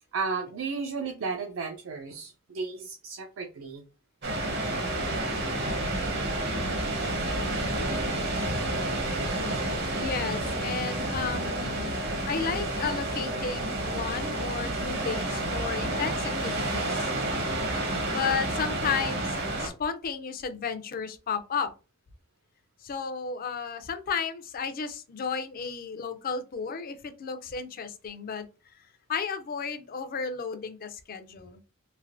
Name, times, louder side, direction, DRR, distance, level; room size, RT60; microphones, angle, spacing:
voice 1, 0.1-3.8, right 4 dB, 70° right, 0.4 m, -34 dB
sound 1, 4.2-19.7, right 1 dB, 55° right, 0.8 m, -30 dB
voice 2, 9.8-12.0 12.3-17.1 18.1-21.7 22.8-28.5 29.1-31.6, left 6 dB, 45° left, 0.4 m, -33 dB
3.3 x 2.5 x 2.5 m
head